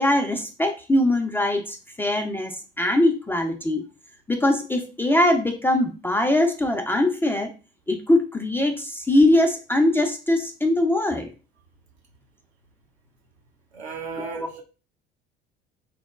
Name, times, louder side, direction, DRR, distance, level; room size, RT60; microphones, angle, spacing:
voice 1, 0.0-3.8 4.3-7.5 7.9-11.3 14.2-14.5, left 1 dB, 5° left, 0.3 m, -22 dB
voice 2, 13.7-14.6, right 5 dB, 80° right, 0.8 m, -35 dB
3.9 x 2.0 x 2.2 m
figure-of-eight pair, 60°, 32 cm